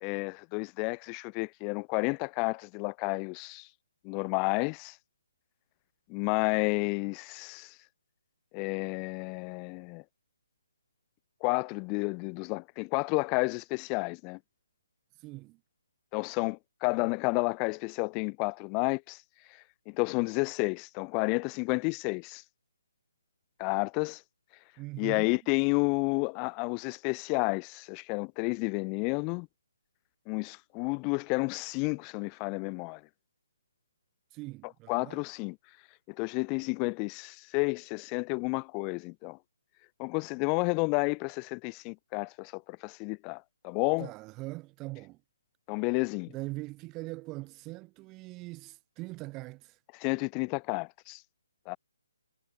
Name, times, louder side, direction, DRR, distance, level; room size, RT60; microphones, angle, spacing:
voice 1, 0.0-3.7 4.0-4.9 6.1-7.7 8.5-10.0 11.4-14.4 16.1-19.2 19.9-22.4 23.6-24.2 25.0-29.5 30.3-33.0 34.9-35.6 36.2-39.4 40.0-44.1 45.7-46.3 50.0-51.2 51.7-51.8, left 35 dB, 10° left, 0.7 m, -31 dB
voice 2, 15.2-15.6 24.8-25.4 34.3-35.2 44.0-45.2 46.3-49.8, right 22 dB, 10° right, 3.1 m, -41 dB
hypercardioid pair, 180°, 0 cm